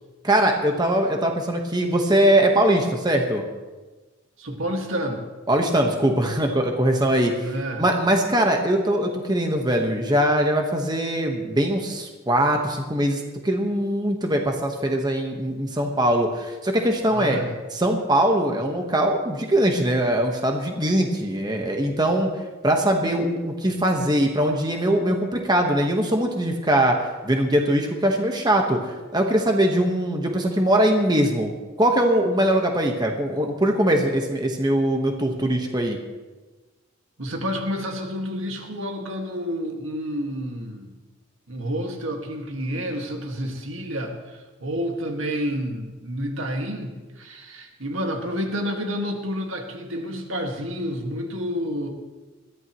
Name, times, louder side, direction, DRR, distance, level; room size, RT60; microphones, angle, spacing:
voice 1, 0.2-3.4 5.5-7.5 7.8-17.4 17.7-22.3 22.6-31.5 31.8-36.0, right 1 dB, 20° right, 3 dB, 1.3 m, -21 dB
voice 2, 4.4-5.2 7.4-7.8 17.1-17.5 37.2-40.9 41.5-51.9, equal, 85° right, 3 dB, 1.9 m, -29 dB
21.0 x 14.5 x 3.1 m, 1.2 s
head